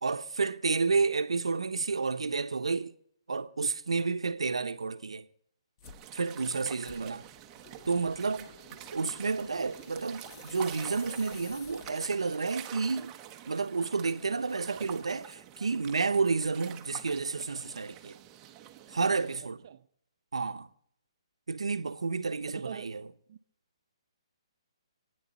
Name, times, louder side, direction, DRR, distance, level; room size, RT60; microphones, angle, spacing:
voice 1, 0.0-2.9 3.3-5.3 6.1-7.2 7.9-8.5 8.9-13.1 13.5-18.2 18.9-19.6 20.3-20.7 21.5-23.1, right 4 dB, 90° right, 0.8 m, -30 dB
sound 1, 5.8-6.1 6.8-12.3, left 5 dB, 40° left, 1.1 m, -53 dB
sound 2, 5.8-19.4, right 11 dB, 20° right, 0.8 m, -47 dB
voice 2, 22.4-22.9 23.3-23.4, right 9 dB, 50° right, 0.7 m, -44 dB
27.5 x 9.6 x 4.1 m
hypercardioid pair, 145°, 3 cm